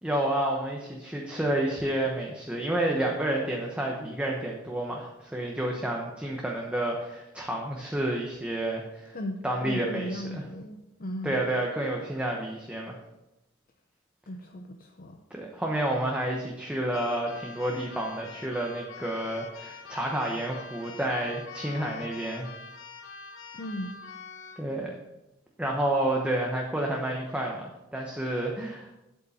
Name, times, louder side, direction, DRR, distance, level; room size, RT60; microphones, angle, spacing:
voice 1, 0.0-9.2 9.4-10.4 11.2-13.0 15.3-22.5 24.6-25.0 25.6-28.9, right 1 dB, 5° right, -1 dB, 0.9 m, -30 dB
voice 2, 9.1-11.4 14.3-15.2 23.5-24.0, left 1 dB, 45° left, 3 dB, 0.7 m, -36 dB
Keyboard (musical), 16.9-24.7, left 5 dB, 75° left, 1.0 m, -45 dB
8.3 x 8.1 x 4.2 m, 0.94 s
head